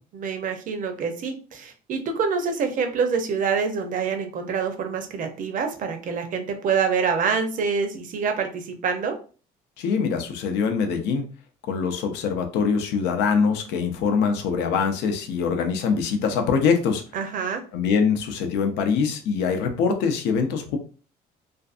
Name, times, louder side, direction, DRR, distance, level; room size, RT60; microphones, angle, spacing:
voice 1, 0.1-9.2 17.1-17.6, right 5 dB, 50° right, 6 dB, 0.6 m, -26 dB
voice 2, 9.8-11.2 11.7-17.0 17.7-20.8, left 6 dB, 90° left, 6 dB, 0.5 m, -23 dB
2.5 x 2.4 x 2.4 m, 0.38 s
cardioid pair, 110°, 17 cm